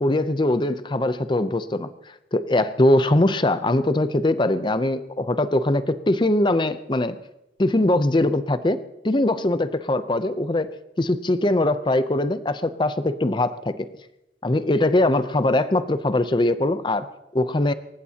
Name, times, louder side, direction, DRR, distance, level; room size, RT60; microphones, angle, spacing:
voice 1, 0.0-1.9 2.3-7.2 7.6-8.8 9.0-10.7 11.0-13.9 14.4-17.1 17.3-17.7, left 1 dB, 25° left, 12 dB, 0.6 m, -21 dB
26.0 x 15.0 x 2.9 m, 0.88 s
head